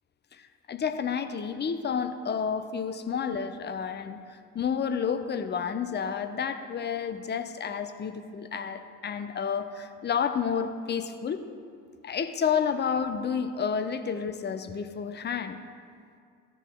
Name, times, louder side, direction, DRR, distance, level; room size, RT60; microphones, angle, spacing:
voice 1, 0.3-11.4 12.0-15.6, left 7 dB, 25° left, 9 dB, 0.6 m, -30 dB
16.0 x 9.8 x 2.2 m, 2.3 s
figure-of-eight pair, 55°, 44 cm